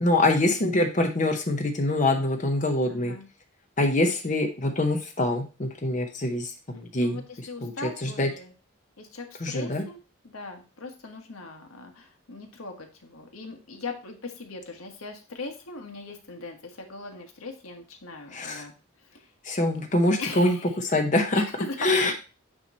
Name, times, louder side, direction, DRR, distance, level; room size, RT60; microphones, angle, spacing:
voice 1, 0.0-3.1 3.8-7.2 7.6-7.7 8.0-8.3 9.4-9.8 18.3-18.6 19.4-21.4 21.8-22.1, left 2 dB, 35° left, 4 dB, 0.7 m, -24 dB
voice 2, 2.9-3.3 7.0-8.5 9.0-10.0 10.2-18.7 19.1-19.2 20.2-20.7 21.3-21.9, left 3 dB, 90° left, 3 dB, 1.4 m, -39 dB
8.7 x 3.1 x 4.2 m, 0.33 s
head